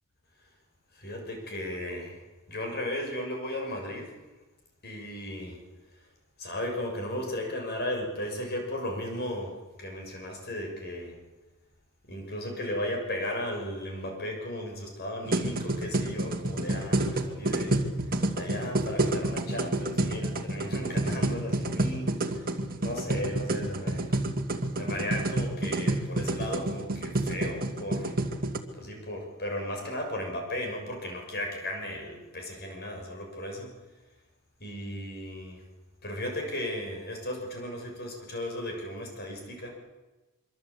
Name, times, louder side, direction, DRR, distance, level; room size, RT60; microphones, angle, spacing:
voice 1, 0.9-2.2 2.5-4.1 4.8-5.6 6.4-11.2 12.1-17.8 18.1-22.5 22.8-24.1 24.8-28.1 28.7-33.7 34.6-35.6 36.0-39.7, left 1 dB, 45° left, 2 dB, 6.8 m, -35 dB
sound 1, 15.3-28.6, right 1 dB, 40° right, 2.3 m, -29 dB
25.5 x 24.5 x 8.5 m, 1.2 s
head